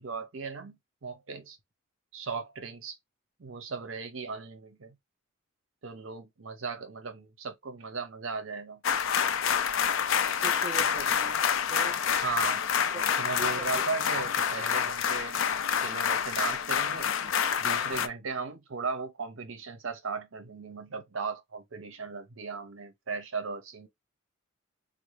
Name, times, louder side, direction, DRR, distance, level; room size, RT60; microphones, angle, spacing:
voice 1, 0.0-1.6 2.1-3.0 3.4-5.0 5.8-8.8 12.2-12.6 13.2-15.4 15.8-17.1 17.6-23.9, right 4 dB, 65° right, 0.6 m, -37 dB
sound 1, 8.8-18.1, left 8 dB, 65° left, 0.4 m, -27 dB
voice 2, 10.4-12.0 12.9-13.0 13.4-13.8 14.1-14.2 14.6-14.7, right 3 dB, 30° right, 0.7 m, -41 dB
4.1 x 2.0 x 3.2 m
head